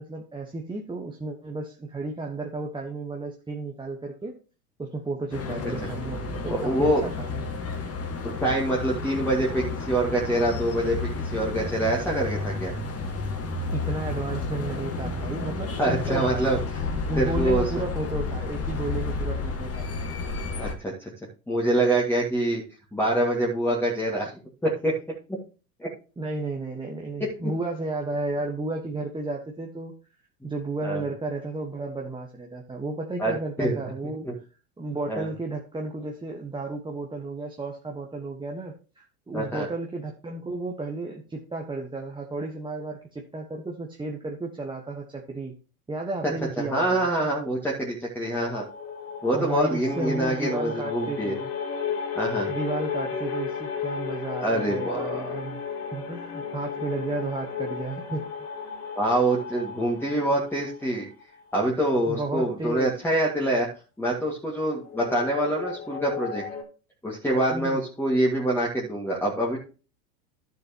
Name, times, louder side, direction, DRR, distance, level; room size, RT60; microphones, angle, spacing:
voice 1, 0.0-4.3 4.8-7.5 13.7-16.6 17.1-19.9 26.2-29.9 30.4-34.3 34.8-45.6 45.9-47.1 49.3-51.5 52.5-55.6 55.9-58.3 62.1-63.0 67.5-67.8, right 2 dB, 10° right, 0 dB, 1.3 m, -33 dB
sound 1, 5.3-20.7, left 4 dB, 30° left, 2.1 m, -31 dB
voice 2, 6.5-7.0 8.2-12.7 15.8-16.6 17.1-17.6 20.6-21.1 21.5-22.6 22.9-24.3 24.6-24.9 25.8-25.9 30.8-31.0 33.2-33.3 33.6-33.8 34.2-34.3 35.1-35.3 39.3-39.7 46.6-48.6 49.2-51.3 52.2-52.5 54.4-55.4 59.0-61.1 61.5-63.7 64.0-66.4 67.0-69.6, right 1 dB, 5° left, -3 dB, 2.0 m, -25 dB
sound 2, 48.2-61.4 64.1-66.6, left 7 dB, 75° left, 3.4 m, -34 dB
12.0 x 6.8 x 3.0 m, 0.34 s
hypercardioid pair, 95°, 46 cm